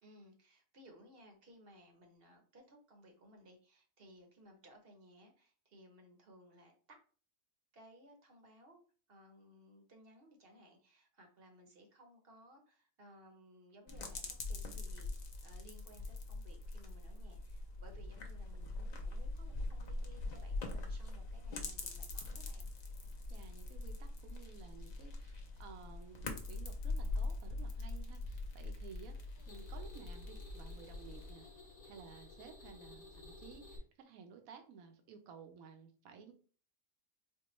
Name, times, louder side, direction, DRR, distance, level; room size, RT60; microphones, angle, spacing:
voice 1, 0.0-7.0 7.7-8.8 9.1-22.7, equal, 50° right, 3 dB, 0.9 m, -60 dB
sound 1, 13.9-31.3, left 2 dB, 55° left, 0.5 m, -43 dB
voice 2, 23.3-29.2 29.5-31.5 31.9-36.3, right 6 dB, 80° right, 6 dB, 1.1 m, -55 dB
sound 2, 28.9-33.8, left 2 dB, 85° left, 1.2 m, -55 dB
4.4 x 2.2 x 3.0 m, 0.41 s
omnidirectional pair, 1.4 m